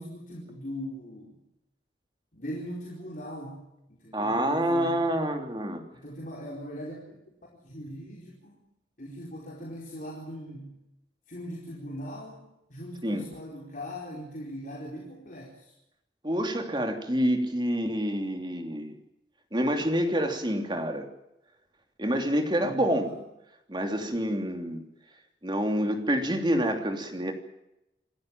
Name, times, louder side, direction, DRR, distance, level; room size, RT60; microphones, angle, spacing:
voice 1, 0.0-1.4 2.3-5.2 5.9-7.2 7.6-8.6 9.0-10.7 11.3-15.7 22.6-23.2, equal, 45° left, -3 dB, 4.5 m, -40 dB
voice 2, 4.1-5.8 13.0-13.3 16.2-19.0 19.5-21.1 22.0-23.1 23.7-24.8 25.4-27.3, equal, 25° right, 5 dB, 3.1 m, -27 dB
27.5 x 13.5 x 9.1 m, 0.86 s
head